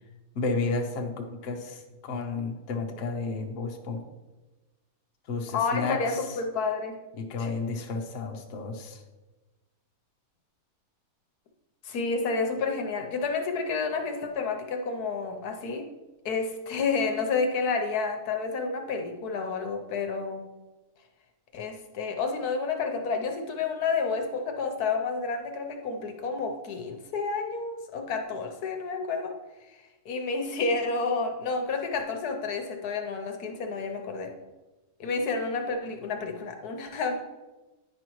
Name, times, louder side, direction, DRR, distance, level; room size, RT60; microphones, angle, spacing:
voice 1, 0.3-4.0 5.3-6.2 7.2-9.0, left 3 dB, 55° left, 2 dB, 1.0 m, -32 dB
voice 2, 5.5-7.0 7.4-7.5 11.8-15.8 16.2-20.4 21.5-29.3 29.7-29.8 30.0-34.3 35.0-37.2, left 4 dB, 75° left, 4 dB, 1.3 m, -30 dB
9.5 x 5.4 x 3.1 m, 1.1 s
omnidirectional pair, 1.7 m